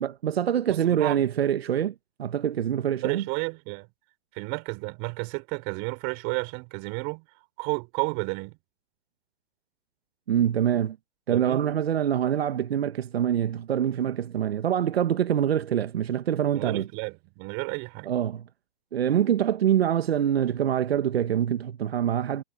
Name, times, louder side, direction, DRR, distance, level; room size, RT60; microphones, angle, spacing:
voice 1, 0.0-3.2 10.3-11.0 11.3-16.9 18.1-18.4 18.9-22.4, right 10 dB, 80° right, 1.3 m, -25 dB
voice 2, 0.7-1.3 3.0-3.9 4.3-7.2 7.6-8.6 11.3-11.6 16.5-18.1, right 33 dB, 40° right, 5.9 m, -32 dB
hypercardioid pair, 140°, 30 cm